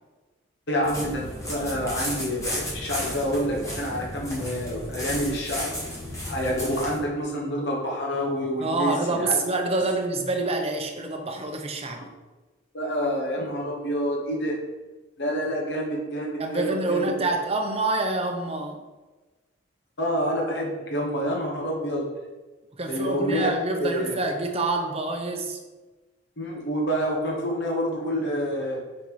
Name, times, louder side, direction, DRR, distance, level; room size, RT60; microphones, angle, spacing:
voice 1, 0.7-5.8 6.3-9.4 12.7-14.6 15.2-17.3 20.0-22.0 22.9-23.5 23.8-24.2 26.4-28.8, equal, 55° left, -2 dB, 1.2 m, -28 dB
sound 1, 0.8-7.0, equal, 15° left, 1.5 m, -34 dB
voice 2, 8.6-12.0 16.4-18.8 22.7-25.6, right 2 dB, 30° right, 3 dB, 0.7 m, -27 dB
5.3 x 4.4 x 4.7 m, 1.2 s
head